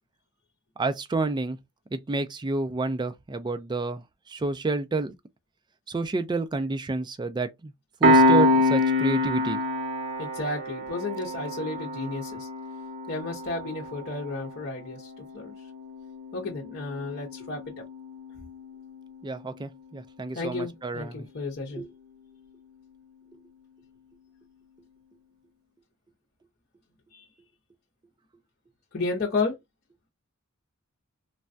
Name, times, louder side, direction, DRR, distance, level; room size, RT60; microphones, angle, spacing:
voice 1, 0.8-1.6 1.9-5.1 5.9-7.7 8.0-9.6 19.2-21.3 21.8-21.9, right 3 dB, 20° right, 0.4 m, -29 dB
Piano, 8.0-19.1, left 1 dB, 60° right, 1.0 m, -27 dB
voice 2, 10.2-12.5 13.1-15.5 16.3-17.7 20.3-21.8 27.1-27.2 28.9-29.5, left 3 dB, 50° left, 0.8 m, -32 dB
3.2 x 2.2 x 2.5 m
head